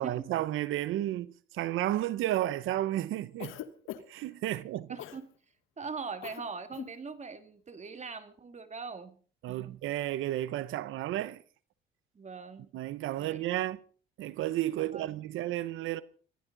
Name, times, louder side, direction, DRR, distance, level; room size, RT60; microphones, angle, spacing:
voice 1, 0.0-3.6 4.1-5.0 9.4-11.4 12.7-13.8 14.2-16.0, right 14 dB, 85° right, 0.8 m, -32 dB
Cough, 3.4-4.3 5.0-5.2 6.2-6.4 6.7-6.9, left 12 dB, 85° left, 1.3 m, -41 dB
voice 2, 4.9-5.3 5.8-9.2 9.5-9.8 12.1-12.7 13.2-13.7 14.8-15.1, right 5 dB, 35° right, 2.1 m, -42 dB
24.0 x 15.5 x 3.9 m
cardioid pair, 90°, 20 cm